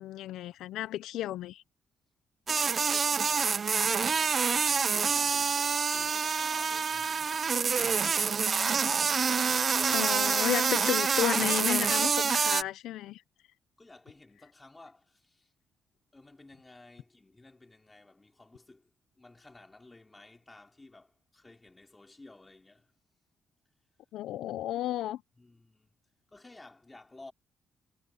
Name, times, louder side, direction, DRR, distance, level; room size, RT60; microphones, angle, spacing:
voice 1, 0.0-1.6 9.9-13.2 24.1-25.2, left 14 dB, 85° left, 0.5 m, -33 dB
Trapped Fly, 2.5-12.6, right 6 dB, 40° right, 0.6 m, -27 dB
voice 2, 2.9-9.0 13.8-15.5 16.1-22.9 25.4-25.9 26.3-27.3, left 2 dB, 20° left, 4.9 m, -54 dB
cardioid pair, 90°, 0 cm